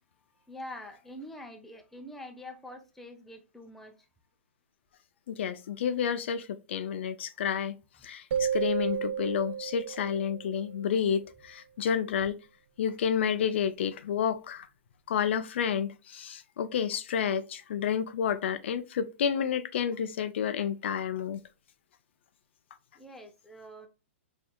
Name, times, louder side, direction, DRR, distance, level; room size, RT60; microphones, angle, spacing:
voice 1, 0.5-3.9 23.0-23.9, left 1 dB, 5° left, 0.5 m, -45 dB
voice 2, 5.3-7.8 8.0-12.4 12.8-14.7 15.1-21.4, left 8 dB, 60° left, 0.5 m, -30 dB
sound 1, 8.3-10.9, right 8 dB, 60° right, 0.5 m, -32 dB
4.4 x 3.3 x 2.2 m
hypercardioid pair, 150°, 7 cm